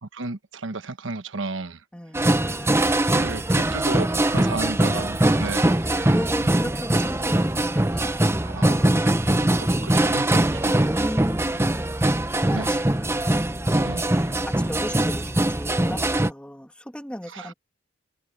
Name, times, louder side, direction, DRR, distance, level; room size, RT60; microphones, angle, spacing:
voice 1, 0.0-1.8 3.1-4.1 4.3-5.7 8.4-10.7 12.5-12.8 13.8-14.3 17.3-17.5, right 3 dB, 80° right, 1.1 m, -33 dB
voice 2, 1.9-3.2 3.9-4.7 6.0-8.7 10.7-11.6 12.3-13.2 13.8-17.5, equal, 5° left, 2.5 m, -37 dB
sound 1, 2.1-16.3, right 1 dB, 15° right, 0.8 m, -22 dB
head